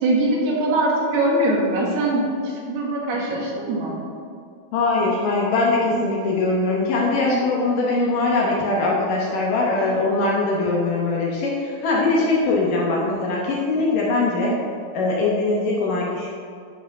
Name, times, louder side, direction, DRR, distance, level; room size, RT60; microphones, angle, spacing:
voice 1, 0.0-3.9, right 1 dB, 75° right, -3 dB, 3.4 m, -22 dB
voice 2, 4.7-14.6 14.9-16.3, left 3 dB, 70° left, -3 dB, 2.3 m, -21 dB
11.5 x 4.9 x 4.8 m, 2.3 s
omnidirectional pair, 4.6 m